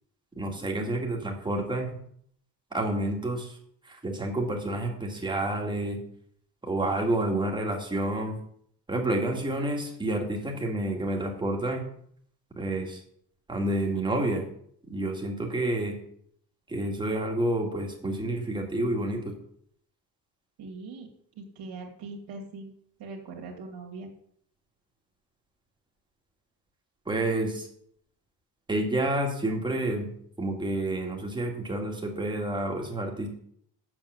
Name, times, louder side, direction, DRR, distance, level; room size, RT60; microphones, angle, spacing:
voice 1, 0.4-2.0 2.7-3.6 3.8-6.0 6.6-8.3 8.9-11.9 12.6-13.0 13.5-14.5 14.9-15.9 16.7-19.3 27.1-27.7 28.7-30.1 30.4-33.4, right 1 dB, 10° right, 1 dB, 1.9 m, -29 dB
voice 2, 20.6-21.1 21.4-22.7 23.0-24.1, right 3 dB, 85° right, -1 dB, 2.2 m, -41 dB
7.5 x 7.2 x 8.0 m, 0.66 s
cardioid pair, 175°, 40 cm